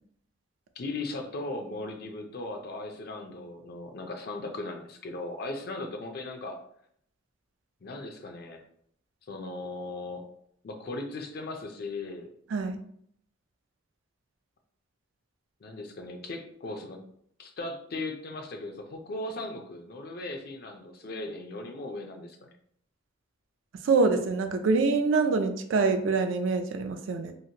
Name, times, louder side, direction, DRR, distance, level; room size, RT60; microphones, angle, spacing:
voice 1, 0.8-6.6 7.8-8.6 9.3-10.2 10.6-12.3 15.6-17.0 17.4-22.5, left 2 dB, 50° left, 5 dB, 0.4 m, -38 dB
voice 2, 23.8-27.3, right 4 dB, 75° right, 6 dB, 0.4 m, -25 dB
2.9 x 2.5 x 2.7 m, 0.68 s
head